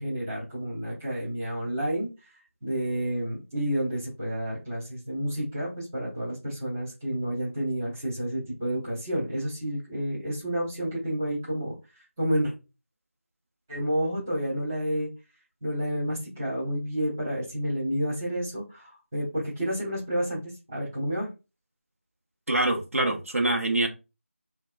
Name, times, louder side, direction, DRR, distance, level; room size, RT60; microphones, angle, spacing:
voice 1, 0.0-2.1 2.6-11.7 12.2-12.5 13.7-15.1 15.6-20.4 20.7-21.3, equal, 10° right, 0.6 m, -30 dB
voice 2, 22.5-23.9, right 2 dB, 70° right, 0.8 m, -25 dB
3.4 x 2.2 x 2.3 m
figure-of-eight pair, 170°, 8 cm